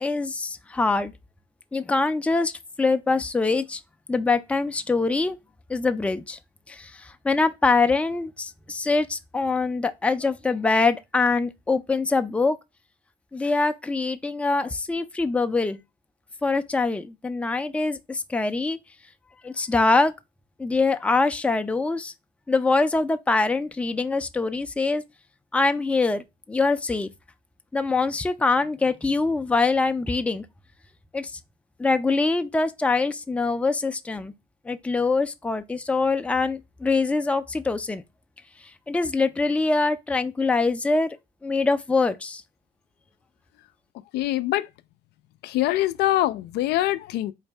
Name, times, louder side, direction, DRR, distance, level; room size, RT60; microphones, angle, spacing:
voice 1, 0.0-1.1 1.7-2.5 2.8-3.8 4.1-5.4 5.7-6.4 6.7-12.6 13.3-15.8 16.4-18.8 19.4-20.1 20.6-22.1 22.5-25.0 25.5-27.1 27.7-30.5 31.1-31.3 31.8-34.3 34.7-38.0 38.9-41.2 41.4-42.4, left 3 dB, 5° left, 0.4 m, -24 dB
voice 2, 44.1-44.7 45.4-47.3, left 15 dB, 75° left, 0.4 m, -24 dB
4.0 x 2.7 x 3.3 m
cardioid pair, 110°, 17 cm